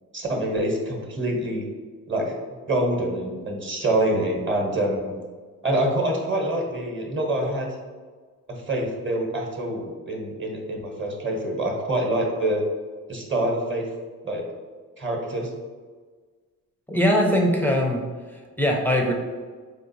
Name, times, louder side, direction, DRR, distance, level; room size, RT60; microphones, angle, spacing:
voice 1, 0.1-1.7 2.1-2.3 2.7-5.2 5.6-7.7 8.5-12.6 13.1-13.9 14.2-14.4 15.0-15.5, right 1 dB, 30° right, 1 dB, 1.0 m, -26 dB
voice 2, 16.9-18.0 18.3-19.1, equal, 5° left, 0 dB, 0.5 m, -21 dB
3.7 x 2.5 x 2.6 m, 1.5 s
supercardioid pair, 50°, 40 cm